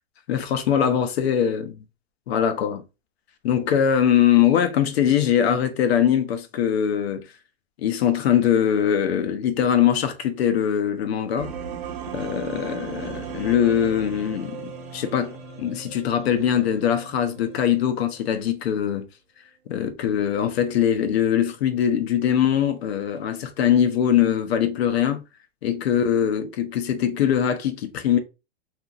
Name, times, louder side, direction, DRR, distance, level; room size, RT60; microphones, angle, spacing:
voice 1, 0.3-1.8 2.3-2.8 3.4-7.3 7.8-11.5 12.1-19.1 19.7-25.2 25.6-28.2, left 9 dB, 85° left, 0.7 m, -22 dB
sound 1, 11.4-18.4, right 6 dB, 70° right, 0.8 m, -37 dB
2.9 x 2.5 x 2.4 m
supercardioid pair, 155°, 30 cm